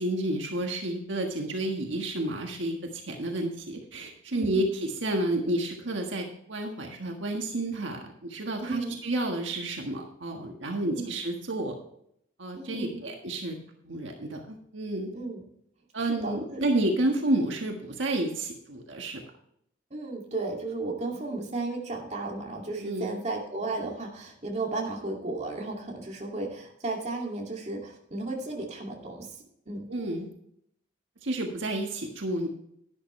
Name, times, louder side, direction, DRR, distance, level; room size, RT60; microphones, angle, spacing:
voice 1, 0.0-11.8 12.4-13.6 13.8-15.1 15.9-19.2 22.8-23.1 29.9-30.3 31.2-32.5, right 1 dB, 75° right, 2 dB, 1.6 m, -30 dB
voice 2, 4.3-4.6 8.6-9.0 10.8-11.1 12.6-13.0 15.1-15.4 16.1-16.6 19.9-29.3 29.7-29.9, right 2 dB, 35° right, 0 dB, 2.4 m, -34 dB
11.5 x 11.0 x 3.2 m, 0.71 s
head